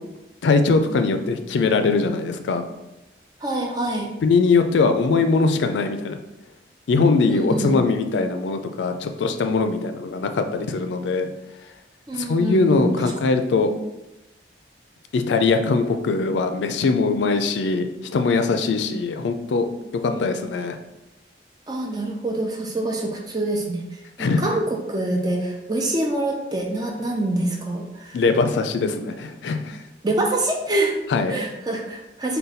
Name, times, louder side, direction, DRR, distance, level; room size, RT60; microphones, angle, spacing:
voice 1, 0.4-2.6 4.2-6.2 6.9-11.3 12.2-13.7 15.1-19.7 20.0-20.8 24.2-24.5 28.1-29.8 31.1-31.4, left 4 dB, 90° left, 7 dB, 0.4 m, -21 dB
voice 2, 3.4-4.1 7.3-7.7 12.1-13.3 20.1-20.2 21.7-28.2 30.0-31.0 31.3-32.4, right 2 dB, 25° right, 1 dB, 0.5 m, -26 dB
3.9 x 2.2 x 4.0 m, 0.94 s
head